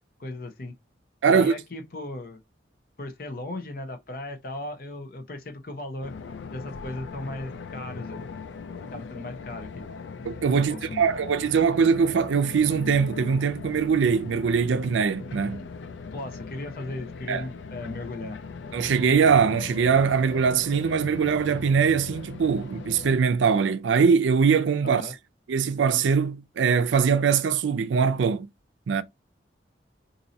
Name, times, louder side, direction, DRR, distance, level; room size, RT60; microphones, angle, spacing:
voice 1, 0.2-0.7 1.2-2.4 3.0-6.1 6.5-8.2 8.9-9.9 10.7-11.1 16.1-18.4 24.8-25.1, left 2 dB, 50° left, 0.7 m, -37 dB
voice 2, 1.2-1.6 10.2-15.7 17.3-17.4 18.7-25.0 25.5-28.5 28.9-29.0, right 6 dB, 90° right, 0.4 m, -22 dB
sound 1, 6.0-23.2, left 5 dB, 85° left, 0.4 m, -39 dB
2.7 x 2.6 x 3.9 m
head